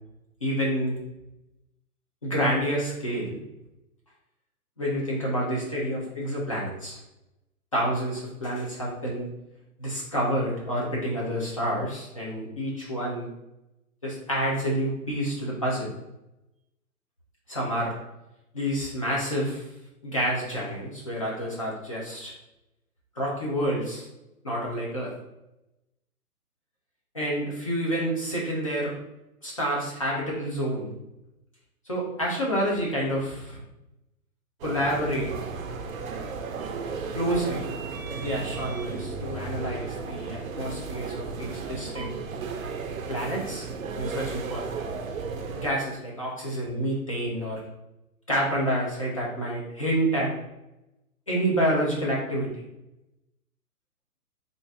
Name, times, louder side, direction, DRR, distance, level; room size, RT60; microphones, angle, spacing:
voice 1, 0.4-1.0 2.2-3.4 4.8-7.0 7.7-9.3 9.8-13.3 14.0-15.9 17.5-17.9 18.5-19.7 20.0-22.3 23.2-24.1 24.4-25.1 27.1-28.9 29.4-30.9 31.9-33.6 34.6-35.3 37.1-37.7 38.1-42.2 43.1-43.7 43.9-44.7 45.5-47.6 48.3-50.3 51.3-52.6, equal, 25° left, -4 dB, 0.5 m, -28 dB
sound 1, 34.6-45.7, right 4 dB, 65° right, 0.6 m, -34 dB
3.7 x 2.5 x 3.4 m, 0.93 s
hypercardioid pair, 160°, 45 cm